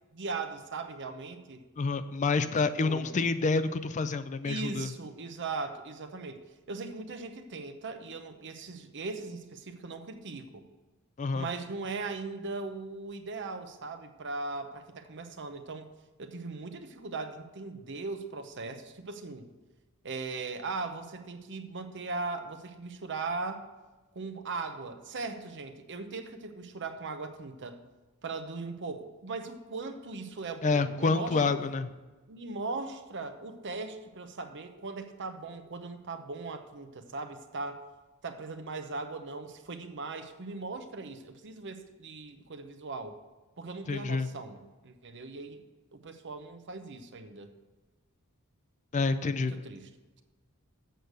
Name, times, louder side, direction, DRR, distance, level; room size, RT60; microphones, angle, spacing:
voice 1, 0.1-1.7 2.6-3.2 4.4-6.4 6.7-10.6 11.3-15.9 16.2-19.5 20.0-23.7 24.1-27.8 28.2-31.5 32.3-37.8 38.2-43.2 43.6-45.6 45.9-47.5 49.2-49.9, right 3 dB, 55° right, 8 dB, 0.8 m, -39 dB
voice 2, 1.8-4.9 11.2-11.5 30.6-31.9 43.9-44.3 48.9-49.5, left 4 dB, 35° left, 12 dB, 0.4 m, -28 dB
7.8 x 6.6 x 6.7 m, 1.2 s
head